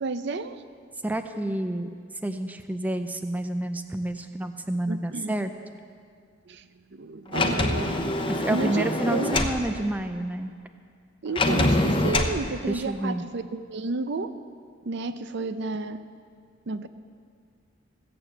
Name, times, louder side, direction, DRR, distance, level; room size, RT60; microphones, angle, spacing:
voice 1, 0.0-0.6 4.9-5.4 6.5-6.7 6.9-9.5 11.2-14.3 14.9-16.0 16.7-16.9, right 3 dB, 60° right, 10 dB, 0.6 m, -31 dB
voice 2, 1.0-1.9 2.2-5.5 8.3-10.5 12.7-13.2, right 1 dB, 10° right, 7 dB, 0.4 m, -29 dB
Sliding door, 7.3-9.6 11.3-12.4, left 2 dB, 25° left, 0.7 m, -24 dB
15.5 x 6.9 x 7.8 m, 2.1 s
head